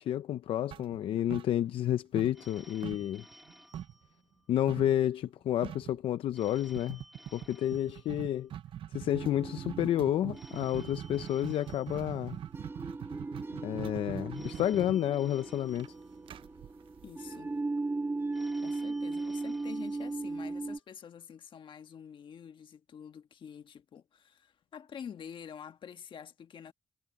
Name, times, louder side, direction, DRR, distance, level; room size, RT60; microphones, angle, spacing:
voice 1, 0.0-3.2 4.5-7.0 7.3-8.5 8.9-12.4 13.6-15.9, left 11 dB, 85° left, 0.5 m, -30 dB
sound 1, 0.7-1.9 2.2-4.1 4.7-5.0 5.3-5.4 5.6-6.0 6.8-17.6, right 10 dB, 75° right, 0.5 m, -43 dB
Telephone, 2.3-4.8 6.3-8.8 10.3-12.8 14.3-16.8 18.3-20.8, equal, ahead, 3.2 m, -57 dB
sound 2, 9.1-20.8, right 3 dB, 25° right, 2.1 m, -38 dB
voice 2, 17.0-17.5 18.6-26.7, left 8 dB, 65° left, 1.4 m, -47 dB
cardioid pair, 85°, 9 cm